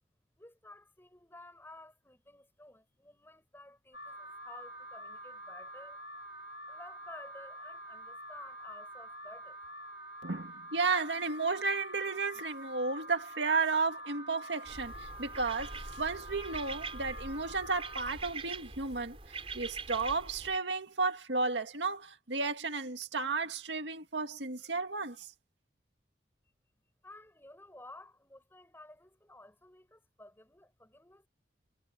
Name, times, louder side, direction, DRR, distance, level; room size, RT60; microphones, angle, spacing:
voice 1, 0.4-6.0 6.7-9.6 27.0-31.3, left 2 dB, 15° left, 7.0 m, -53 dB
Alarm, 3.9-18.0, right 1 dB, 80° left, 2.4 m, -47 dB
voice 2, 10.2-25.3, right 4 dB, 90° right, 2.1 m, -33 dB
sound 1, 14.7-20.6, right 4 dB, 35° right, 4.4 m, -44 dB
head